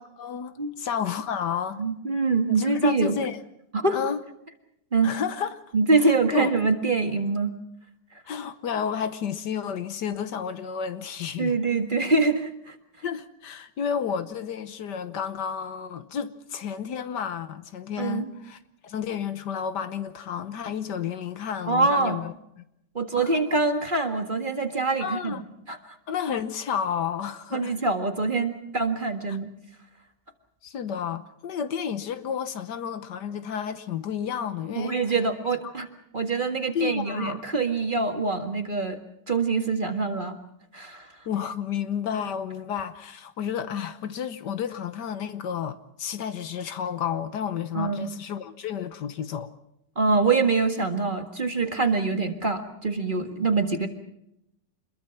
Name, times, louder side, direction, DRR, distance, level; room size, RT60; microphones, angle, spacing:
voice 1, 0.2-1.8 2.6-3.4 3.9-4.2 5.0-5.6 6.0-6.5 8.3-11.6 13.0-22.6 23.2-23.3 25.0-25.4 26.1-27.7 30.6-35.0 36.7-37.4 41.3-49.5, left 7 dB, 70° left, 1.6 m, -31 dB
voice 2, 1.8-3.2 3.7-4.0 4.9-5.1 5.7-7.5 11.4-12.8 18.0-18.3 21.7-22.2 23.0-25.4 25.7-25.8 27.5-29.5 34.8-35.9 36.1-39.0 39.3-40.4 40.7-41.1 47.7-48.1 50.0-53.9, right 3 dB, 30° right, 1.8 m, -24 dB
27.0 x 21.5 x 5.9 m
omnidirectional pair, 2.0 m